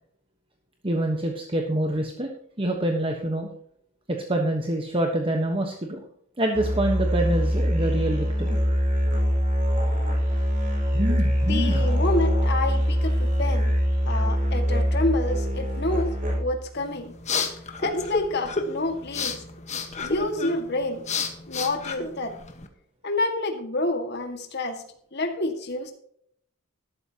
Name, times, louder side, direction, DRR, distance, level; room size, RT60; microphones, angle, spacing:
voice 1, 0.8-2.3 2.6-3.5 4.1-6.0 6.4-8.6 10.9-11.8, right 1 dB, 25° right, 3 dB, 1.2 m, -26 dB
Musical instrument, 6.5-16.7, equal, 40° right, 5.1 m, -23 dB
voice 2, 11.4-13.7 14.1-17.1 17.8-19.4 20.0-21.0 21.5-22.3 23.0-24.8 25.1-25.9, left 2 dB, 50° left, 5 dB, 2.0 m, -28 dB
sound 1, 16.8-22.7, left 4 dB, 35° left, 1.4 m, -31 dB
13.0 x 12.5 x 2.9 m, 0.67 s
head